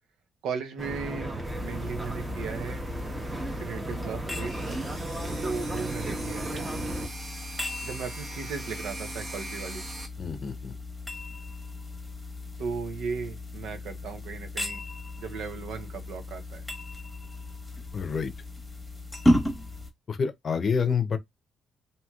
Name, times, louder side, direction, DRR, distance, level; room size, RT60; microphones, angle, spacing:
voice 1, 0.4-2.9 3.6-4.8 5.4-6.6 7.8-9.9 12.6-14.8 15.2-16.6, right 5 dB, 85° right, 0.7 m, -36 dB
sound 1, 0.8-7.1, right 1 dB, 20° right, 0.9 m, -34 dB
sound 2, 1.4-19.9, left 1 dB, 5° left, 1.1 m, -35 dB
sound 3, 4.3-10.1, right 2 dB, 45° right, 0.9 m, -41 dB
voice 2, 10.2-10.7 17.9-18.3 20.1-21.2, left 6 dB, 45° left, 0.6 m, -28 dB
2.9 x 2.8 x 2.3 m
cardioid pair, 90°, 0 cm